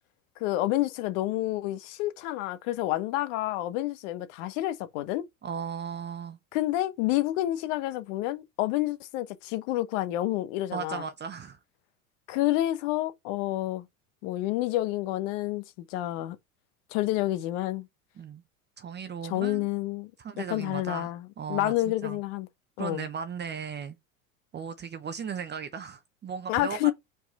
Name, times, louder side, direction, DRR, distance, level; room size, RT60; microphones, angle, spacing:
voice 1, 0.4-5.3 6.5-11.0 12.3-13.9 14.2-16.4 16.9-17.9 19.2-20.1 20.4-22.5 22.8-23.1 26.5-26.9, left 16 dB, 55° left, 1.1 m, -29 dB
voice 2, 5.4-6.4 10.7-11.6 18.2-18.4 18.8-19.7 20.2-21.1 21.4-21.7 22.0-22.2 22.8-24.0 24.5-26.9, right 7 dB, 25° right, 0.8 m, -36 dB
5.0 x 4.7 x 4.2 m
hypercardioid pair, 85°, 44 cm